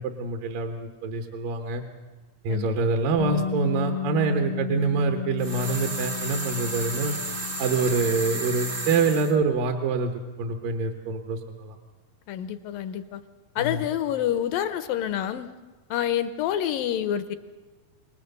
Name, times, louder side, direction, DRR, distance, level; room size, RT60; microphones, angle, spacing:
voice 1, 0.0-1.8 2.4-7.2 7.6-10.1 10.4-11.8 13.6-13.8, right 4 dB, 65° right, 4 dB, 2.7 m, -26 dB
Bass guitar, 3.2-9.4, left 9 dB, 45° left, 0.8 m, -33 dB
sound 1, 5.4-9.3, right 2 dB, 45° right, 1.0 m, -33 dB
voice 2, 12.3-13.2 13.6-15.5 15.9-17.4, left 10 dB, 75° left, 12 dB, 2.2 m, -27 dB
28.0 x 19.5 x 6.8 m, 1.3 s
omnidirectional pair, 4.5 m